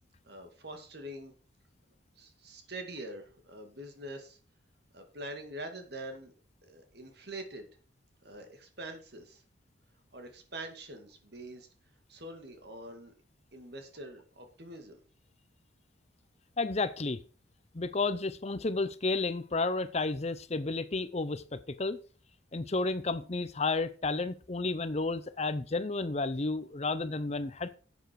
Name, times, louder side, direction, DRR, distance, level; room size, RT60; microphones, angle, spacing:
voice 1, 0.2-1.3 2.2-4.4 4.9-6.3 6.6-7.7 8.2-9.4 10.1-11.7 12.1-13.1 13.5-15.0, right 1 dB, 55° right, 2.3 m, -44 dB
voice 2, 16.6-17.2 17.7-22.0 22.5-27.8, left 3 dB, 35° left, 0.6 m, -32 dB
12.0 x 8.1 x 4.7 m
head